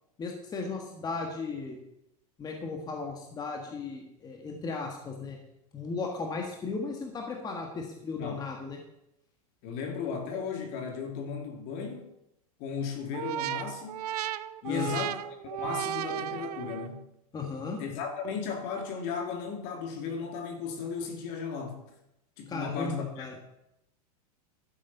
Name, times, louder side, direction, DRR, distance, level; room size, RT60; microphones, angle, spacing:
voice 1, 0.2-1.8 2.4-5.4 5.7-8.8 14.7-14.9 17.3-17.8 22.5-23.3, left 4 dB, 20° left, 2 dB, 1.6 m, -36 dB
voice 2, 9.6-12.1 12.6-14.1 14.6-15.2 15.5-17.1 17.8-21.8 22.4-23.3, left 6 dB, 50° left, 4 dB, 2.6 m, -35 dB
sound 1, 13.1-17.0, right 12 dB, 85° right, 0.6 m, -35 dB
12.0 x 7.3 x 5.5 m, 0.84 s
supercardioid pair, 135°, 19 cm